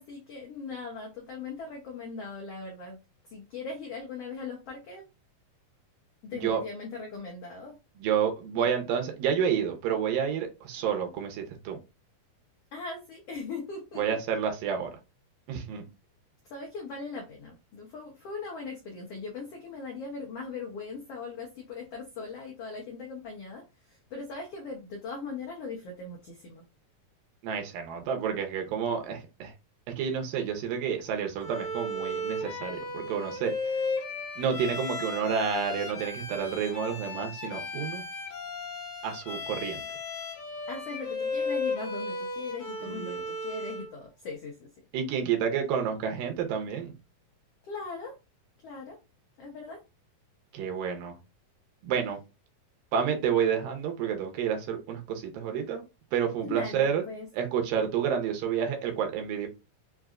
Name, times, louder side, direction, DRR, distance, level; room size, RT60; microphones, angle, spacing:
voice 1, 0.0-3.0 3.3-5.0 6.2-7.8 8.6-8.7 12.7-14.0 16.4-26.6 40.7-44.7 47.6-48.1 48.6-49.0 49.4-49.8 56.4-57.3, left 4 dB, 85° left, 1.3 m, -39 dB
voice 2, 8.0-11.8 14.0-14.9 15.5-15.8 27.4-29.5 30.0-33.5 34.4-38.0 39.0-39.8 42.8-43.2 44.9-46.9 50.5-51.1 51.8-52.2 52.9-55.8 56.1-57.0 57.3-59.5, right 7 dB, 80° right, 2.5 m, -29 dB
Bowed string instrument, 31.4-43.9, left 2 dB, 65° left, 2.4 m, -35 dB
5.9 x 2.7 x 2.4 m
omnidirectional pair, 4.0 m